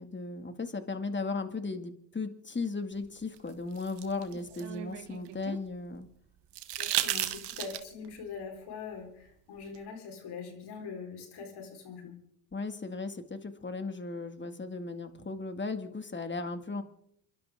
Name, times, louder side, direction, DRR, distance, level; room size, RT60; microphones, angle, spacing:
voice 1, 0.0-6.1 12.5-16.8, left 3 dB, 25° left, 8 dB, 2.4 m, -36 dB
sound 1, 3.4-5.6 6.5-8.1 9.7-9.8, right 13 dB, 80° right, 1.4 m, -34 dB
voice 2, 6.8-12.2, left 5 dB, 70° left, 3 dB, 4.6 m, -43 dB
29.0 x 11.5 x 3.8 m, 0.72 s
supercardioid pair, 60°, 41 cm